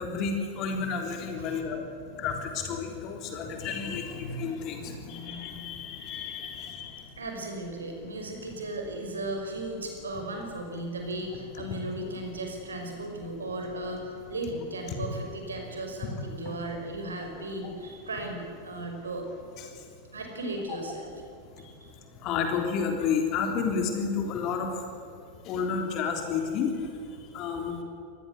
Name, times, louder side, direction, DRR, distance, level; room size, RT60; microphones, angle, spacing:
voice 1, 0.0-7.1 14.9-15.0 16.5-16.6 19.6-19.8 21.6-21.8 22.2-24.9 25.4-27.8, left 5 dB, 40° left, 4 dB, 3.5 m, -31 dB
voice 2, 7.2-19.3 20.1-21.1 21.8-21.9, right 1 dB, 70° right, 3 dB, 5.6 m, -36 dB
27.5 x 20.5 x 8.2 m, 2.5 s
figure-of-eight pair, 90°, 0 cm